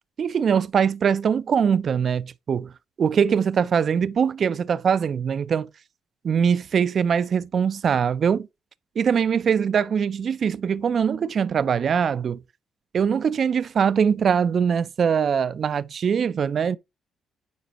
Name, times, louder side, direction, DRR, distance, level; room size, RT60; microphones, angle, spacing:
voice 1, 0.2-2.7 3.0-5.7 6.2-8.5 9.0-12.4 12.9-16.8, right 7 dB, 45° right, 0.3 m, -22 dB
9.3 x 4.4 x 2.8 m
cardioid pair, 135°, 0 cm